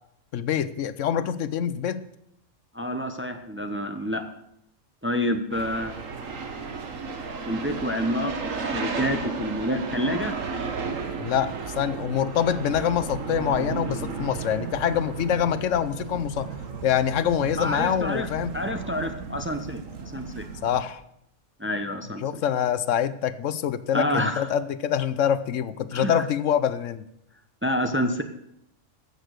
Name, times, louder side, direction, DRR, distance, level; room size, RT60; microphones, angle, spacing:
voice 1, 0.3-2.0 11.2-16.5 16.8-18.5 20.6-21.0 22.2-27.0, left 9 dB, 75° left, 14 dB, 1.0 m, -25 dB
voice 2, 2.7-4.2 5.0-5.9 7.5-10.4 17.6-18.3 18.5-20.5 21.6-22.4 23.9-24.5 25.9-26.3 27.6-28.2, left 1 dB, 10° right, 6 dB, 0.7 m, -28 dB
sound 1, 5.5-20.8, right 5 dB, 80° right, 1.6 m, -34 dB
15.5 x 6.7 x 6.5 m, 0.77 s
omnidirectional pair, 1.3 m